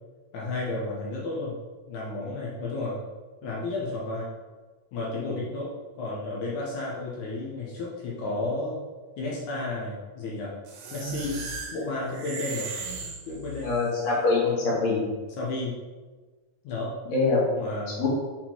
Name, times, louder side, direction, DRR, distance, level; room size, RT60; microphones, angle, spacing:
voice 1, 0.3-1.6 1.9-3.0 3.4-4.3 4.9-5.7 6.0-8.8 9.2-10.5 10.9-11.4 11.7-12.7 13.3-13.8 14.4-14.6 15.4-15.7 16.6-16.9 17.6-18.1, left 2 dB, 90° left, -5 dB, 2.5 m, -32 dB
sound 1, 10.7-13.9, right 3 dB, 65° right, 1.5 m, -37 dB
voice 2, 13.6-15.0 17.1-17.4 18.0-18.1, left 3 dB, 65° left, -5 dB, 3.0 m, -24 dB
6.1 x 4.3 x 4.4 m, 1.3 s
omnidirectional pair, 3.3 m